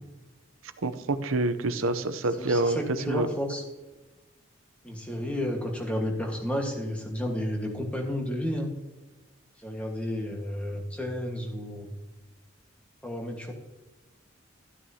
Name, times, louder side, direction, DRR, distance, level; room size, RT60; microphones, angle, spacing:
voice 1, 0.8-2.8 3.1-3.3, right 2 dB, 80° right, 11 dB, 0.7 m, -27 dB
voice 2, 2.4-3.6 4.8-8.7 9.6-11.9 13.0-13.5, left 1 dB, 5° left, 1 dB, 1.4 m, -32 dB
12.5 x 9.0 x 2.8 m, 1.1 s
head